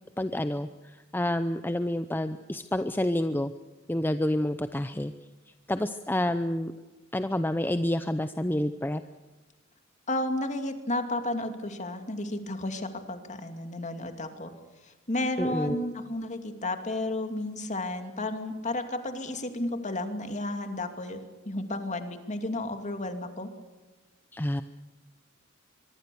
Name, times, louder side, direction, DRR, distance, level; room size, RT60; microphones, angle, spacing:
voice 1, 0.2-3.5 3.9-5.1 5.7-6.7 7.1-9.0 15.4-15.9 24.3-24.6, left 1 dB, 10° left, 10 dB, 0.7 m, -28 dB
voice 2, 10.1-14.5 14.8-21.2 21.4-23.5, left 1 dB, 35° left, 7 dB, 2.6 m, -32 dB
24.0 x 23.5 x 7.0 m, 1.2 s
head